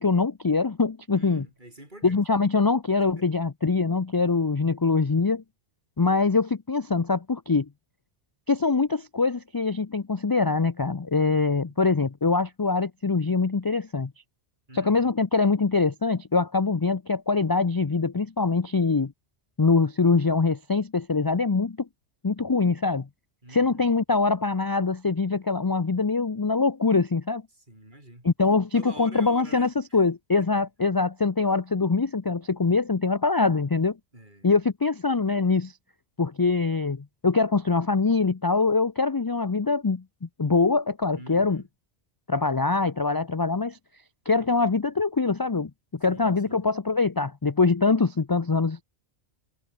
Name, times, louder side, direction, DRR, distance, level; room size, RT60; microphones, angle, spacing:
voice 1, 0.0-1.5 2.0-5.4 6.0-7.7 8.5-14.1 14.7-19.1 19.6-21.8 22.2-23.1 23.5-27.4 28.2-34.0 34.4-35.7 36.2-41.6 42.3-43.8 44.3-48.8, left 4 dB, 25° left, 0.5 m, -23 dB
voice 2, 1.1-2.2 3.0-3.3 11.6-12.0 14.7-15.1 23.4-23.9 27.5-30.0 30.4-30.7 34.1-34.5 41.1-41.7 46.1-46.6, right 1 dB, 45° right, 6.7 m, -46 dB
omnidirectional pair, 1.1 m